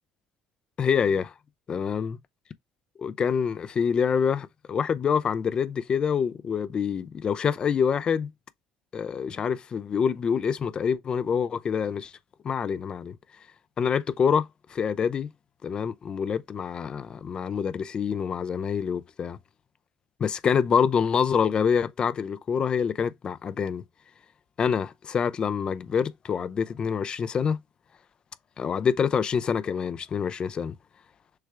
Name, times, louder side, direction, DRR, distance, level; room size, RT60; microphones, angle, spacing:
voice 1, 0.8-1.3 1.7-2.2 3.0-8.3 8.9-12.1 12.4-13.2 13.8-15.3 15.6-19.4 20.2-23.8 24.6-27.6 28.6-30.8, left 7 dB, 35° left, 0.4 m, -26 dB
6.4 x 2.3 x 3.3 m
cardioid pair, 115°, 3 cm